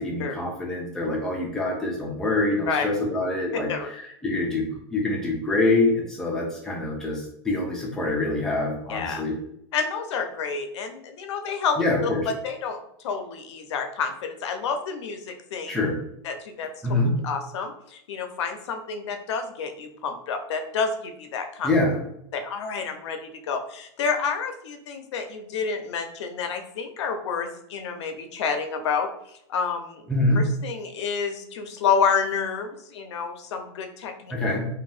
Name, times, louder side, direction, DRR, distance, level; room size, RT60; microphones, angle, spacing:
voice 1, 0.0-9.3 11.8-12.3 15.7-15.9 16.8-17.1 21.6-22.0 30.1-30.4 34.3-34.6, left 2 dB, 5° left, -2 dB, 0.3 m, -25 dB
voice 2, 8.9-9.2 9.7-11.8 12.3-12.8 13.0-15.7 16.2-16.7 17.2-21.7 22.3-30.0 30.4-34.3, left 5 dB, 80° left, 6 dB, 0.5 m, -29 dB
2.6 x 2.2 x 3.2 m, 0.74 s
supercardioid pair, 180°, 14 cm